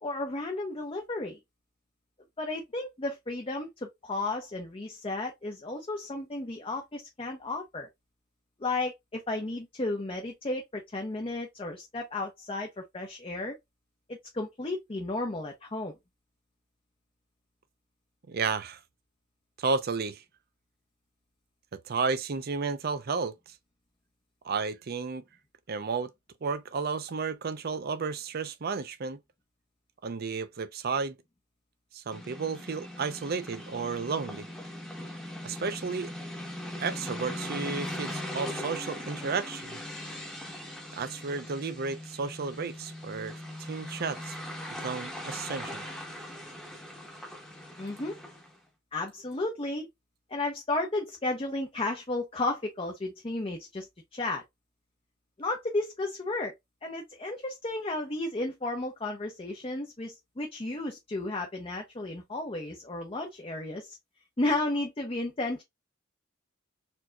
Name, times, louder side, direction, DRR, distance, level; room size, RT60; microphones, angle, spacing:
voice 1, 0.0-1.4 2.4-7.9 8.6-13.5 14.1-15.9 47.8-48.2 48.9-49.9 50.3-54.4 55.4-56.5 56.8-64.0 64.4-65.6, left 2 dB, 30° left, 0.7 m, -33 dB
voice 2, 18.3-18.8 19.6-20.2 21.7-23.3 24.4-25.2 25.7-26.1 26.4-29.2 30.0-31.2 31.9-34.5 35.4-36.1 36.8-39.8 41.0-43.3 43.7-44.4 44.8-45.8, right 5 dB, 50° right, 0.5 m, -32 dB
sound 1, 32.1-48.6, left 1 dB, 5° left, 1.0 m, -40 dB
4.4 x 2.8 x 2.2 m
head